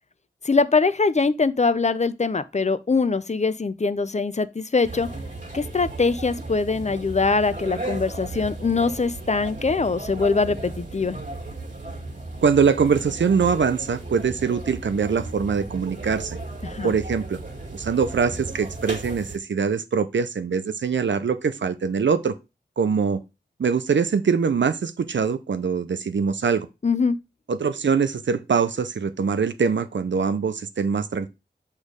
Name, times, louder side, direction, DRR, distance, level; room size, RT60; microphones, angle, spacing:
voice 1, 0.4-5.1 5.5-11.2 16.6-16.9 26.8-27.2, left 4 dB, 40° left, 0.5 m, -23 dB
sound 1, 4.8-19.4, right 2 dB, 45° right, 1.8 m, -35 dB
voice 2, 12.4-16.4 16.8-17.4 17.7-22.3 22.8-23.2 23.6-26.7 27.5-31.3, right 6 dB, 80° right, 0.6 m, -23 dB
6.3 x 3.2 x 5.0 m
cardioid pair, 40°, 19 cm